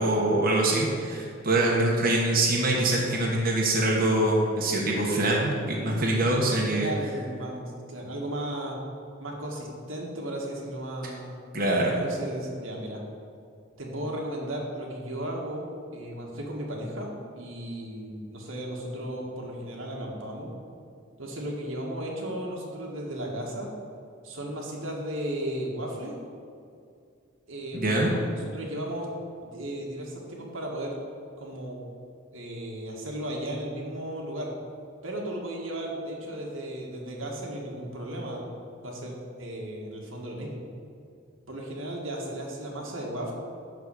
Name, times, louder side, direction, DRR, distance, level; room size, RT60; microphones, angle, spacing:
voice 1, 0.0-6.9 11.5-12.0 27.7-28.1, right 1 dB, 45° right, -3 dB, 1.2 m, -24 dB
voice 2, 6.7-8.8 9.2-11.3 12.0-13.0 13.8-15.7 15.9-20.5 21.2-23.7 24.2-26.2 27.5-29.1 29.4-31.0 31.4-31.8 32.3-34.5 35.0-38.5 38.8-40.6 41.5-43.3, right 1 dB, 85° right, -2 dB, 1.8 m, -35 dB
11.0 x 4.1 x 6.6 m, 2.3 s
head